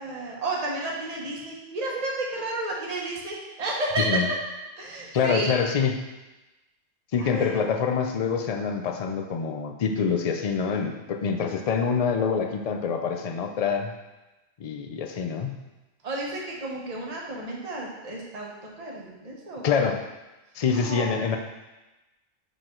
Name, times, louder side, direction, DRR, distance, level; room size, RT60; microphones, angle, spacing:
voice 1, 0.0-4.2 4.8-5.5 7.2-7.5 16.0-19.9 20.7-21.4, right 2 dB, 35° right, -3 dB, 1.1 m, -32 dB
voice 2, 4.0-4.3 5.1-6.0 7.1-13.9 14.6-15.6 19.6-20.0 20.5-21.4, left 6 dB, 60° left, 5 dB, 0.4 m, -26 dB
5.9 x 5.1 x 3.7 m, 1.1 s
omnidirectional pair, 1.3 m